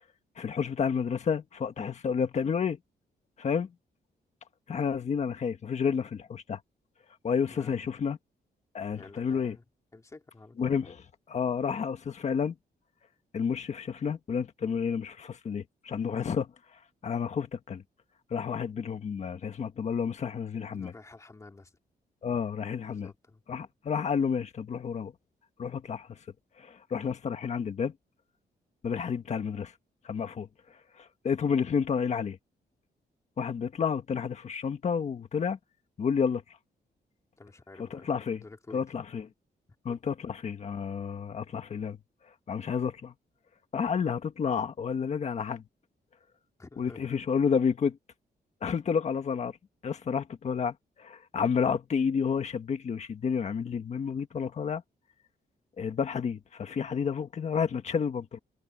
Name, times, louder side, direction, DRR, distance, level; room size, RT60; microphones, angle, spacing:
voice 1, 0.4-2.8 3.4-3.7 4.7-6.6 7.2-8.2 8.7-9.5 10.6-10.9 11.3-12.5 13.3-17.8 18.3-20.9 22.2-23.1 23.5-25.1 25.6-26.2 26.6-27.9 28.8-29.7 30.0-32.4 33.4-35.6 36.0-36.4 37.9-38.4 38.7-39.3 39.8-42.0 42.5-43.1 43.7-45.6 46.8-48.0 48.6-49.6 49.8-54.8 55.8-58.4, left 6 dB, 40° left, 1.6 m, -30 dB
voice 2, 8.9-9.6 9.9-11.0 20.7-21.7 22.9-23.4 37.4-38.1 38.4-38.8 39.9-40.0 46.6-47.1, left 3 dB, 20° left, 3.0 m, -50 dB
wide cardioid pair, 180°, 17 cm